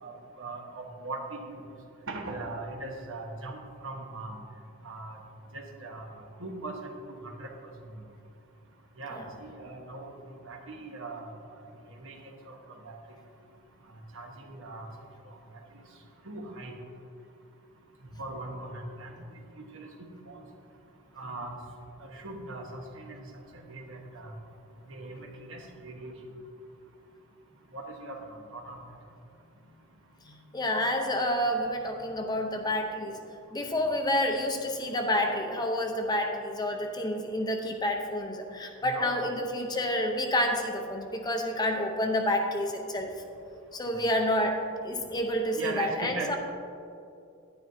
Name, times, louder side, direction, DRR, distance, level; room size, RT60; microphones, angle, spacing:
voice 1, 0.0-1.4 2.1-4.4 4.8-5.2 5.5-7.5 9.0-10.2 10.5-11.3 12.0-12.2 12.4-12.6 12.8-12.9 14.1-14.9 16.2-16.7 18.2-19.1 19.6-19.9 20.3-20.4 21.2-21.6 22.0-23.3 23.7-24.3 24.9-26.1 27.7-28.8 38.8-39.2 45.5-46.4, right 2 dB, 65° right, 1 dB, 1.2 m, -40 dB
voice 2, 30.3-33.2 33.5-43.1 43.7-46.4, left 1 dB, 20° left, 3 dB, 0.7 m, -29 dB
10.5 x 10.0 x 2.7 m, 2.6 s
head